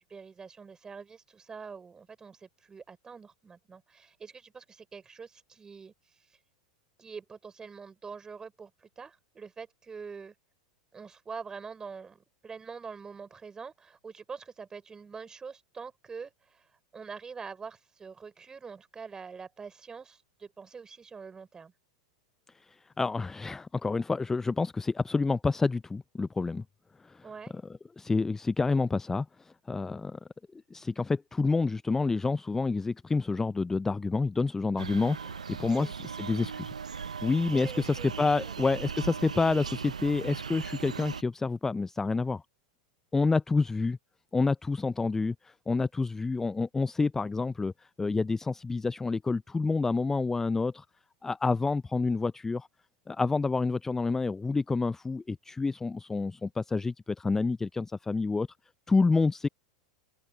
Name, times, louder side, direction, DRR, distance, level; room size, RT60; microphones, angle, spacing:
voice 1, 0.0-5.9 7.0-10.3 10.9-16.6 16.9-21.7 27.2-27.5 35.7-35.9 37.5-38.1 38.4-38.5, right 5 dB, 20° right, 4.6 m, -45 dB
voice 2, 22.7-26.6 27.0-27.2 28.0-30.2 30.7-36.7 37.2-42.4 43.1-44.0 44.3-47.7 48.0-50.8 51.2-52.7 53.1-58.5 58.9-59.5, left 3 dB, 10° left, 0.5 m, -28 dB
sound 1, 34.8-41.2, right 6 dB, 80° right, 0.7 m, -38 dB
open air
figure-of-eight pair, 90°, 4 cm